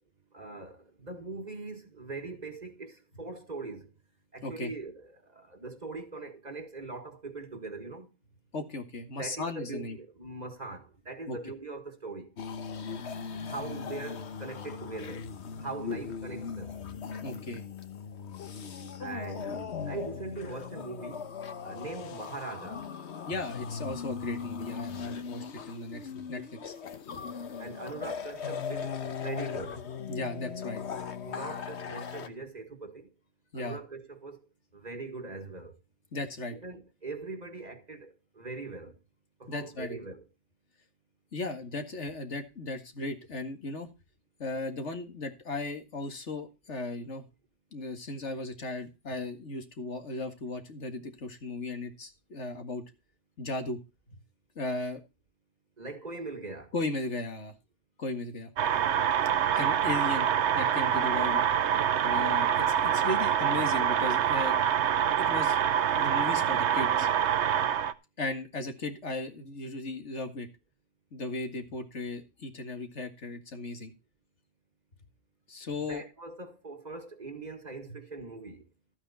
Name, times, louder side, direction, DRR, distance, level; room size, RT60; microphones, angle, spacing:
voice 1, 0.3-3.9 4.3-8.1 9.2-12.3 13.4-15.3 15.6-16.8 19.0-21.3 21.6-22.8 27.6-29.9 31.2-33.1 33.5-34.4 34.7-35.8 36.5-39.0 39.4-40.3 55.8-56.7 75.8-78.7, right 3 dB, 40° right, 1.8 m, -41 dB
voice 2, 8.5-10.0 11.3-11.4 17.2-17.6 23.3-26.7 30.1-30.8 33.5-33.8 36.1-36.6 39.5-40.0 41.3-43.9 44.4-47.2 47.7-52.8 53.4-53.8 54.1-54.2 54.6-55.0 56.7-57.5 58.0-58.5 59.5-60.3 60.5-61.4 62.0-64.6 65.2-65.6 66.0-67.1 68.2-70.5 71.1-73.9 75.5-76.0 77.9-78.0, left 2 dB, 90° left, 2.2 m, -36 dB
sound 1, 12.4-32.3, left 6 dB, 75° left, 1.3 m, -39 dB
sound 2, 58.6-67.9, right 9 dB, 80° right, 1.1 m, -26 dB
13.0 x 8.6 x 4.2 m
omnidirectional pair, 1.2 m